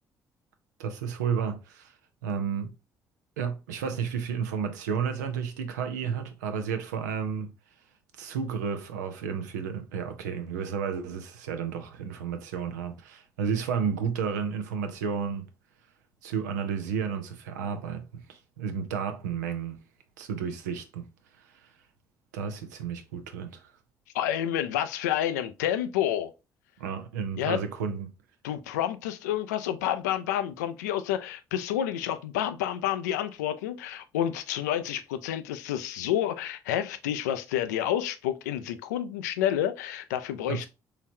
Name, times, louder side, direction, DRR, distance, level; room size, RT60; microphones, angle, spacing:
voice 1, 0.8-1.9 2.2-2.7 3.4-7.5 8.2-15.4 16.2-19.8 20.2-21.1 21.5-21.6 22.3-23.7 26.8-28.1 40.5-40.7, right 6 dB, 80° right, 0.5 m, -32 dB
voice 2, 24.1-26.3 27.4-27.6 28.4-40.7, left 11 dB, 80° left, 0.4 m, -29 dB
3.8 x 3.1 x 2.7 m
figure-of-eight pair, 50°, 9 cm